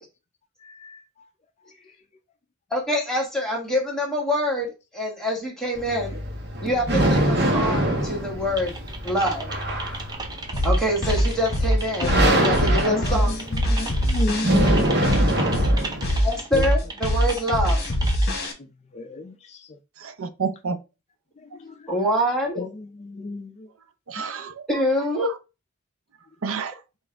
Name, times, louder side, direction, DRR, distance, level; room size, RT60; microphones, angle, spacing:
voice 1, 2.7-6.2 6.6-8.7 9.0-9.5 10.6-13.3 16.2-17.8 21.9-22.6 24.7-25.3, equal, 5° left, 1.5 m, -25 dB
sound 1, 5.7-16.2, right 1 dB, 55° right, 1.0 m, -24 dB
Typing, 8.6-18.5, right 3 dB, 20° right, 0.6 m, -36 dB
sound 2, 10.5-18.5, equal, 50° left, 1.1 m, -22 dB
voice 2, 12.0-13.0 13.7-14.8 18.9-19.3 22.6-22.7 23.0-23.5, left 2 dB, 30° left, 0.4 m, -30 dB
voice 3, 20.0-20.8 24.1-24.8 25.2-25.4 26.4-26.8, right 5 dB, 80° right, 0.6 m, -30 dB
5.2 x 2.5 x 3.4 m
head